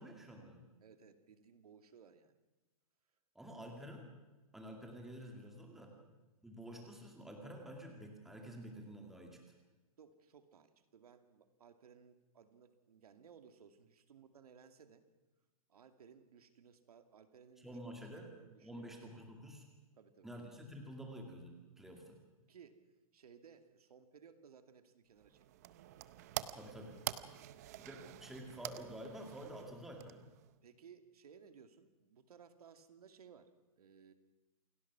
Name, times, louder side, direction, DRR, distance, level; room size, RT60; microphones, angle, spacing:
voice 1, 0.0-0.6 3.4-4.1 4.5-6.0 6.4-9.4 17.6-18.3 18.6-19.6 20.2-22.2 26.5-27.0 27.8-30.2, equal, ahead, 1 dB, 2.2 m, -49 dB
voice 2, 0.8-2.4 5.8-6.1 10.0-15.1 15.7-17.8 18.3-19.1 20.0-20.3 22.5-22.8 23.1-25.5 27.3-27.6 30.6-34.1, right 7 dB, 85° right, 8 dB, 2.4 m, -61 dB
sound 1, 25.2-30.5, right 14 dB, 25° right, 0.6 m, -47 dB
28.0 x 18.0 x 6.1 m, 1.1 s
hypercardioid pair, 175°, 19 cm